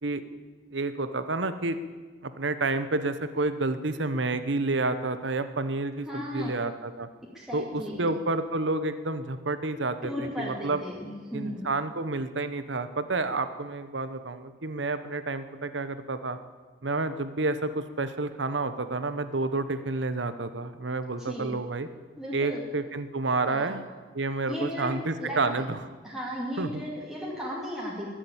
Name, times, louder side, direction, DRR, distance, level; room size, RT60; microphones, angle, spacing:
voice 1, 0.7-1.8 2.2-7.1 7.5-10.8 11.3-16.4 16.8-21.9 22.3-23.9 24.1-25.8 26.6-26.8, right 3 dB, 80° right, 11 dB, 1.1 m, -29 dB
voice 2, 6.1-6.6 7.3-8.1 10.0-11.6 21.2-21.5 22.2-22.6 23.5-23.7 24.5-24.9 25.2-25.4 26.0-28.1, equal, ahead, -5 dB, 2.6 m, -35 dB
21.5 x 7.6 x 8.7 m, 1.4 s
head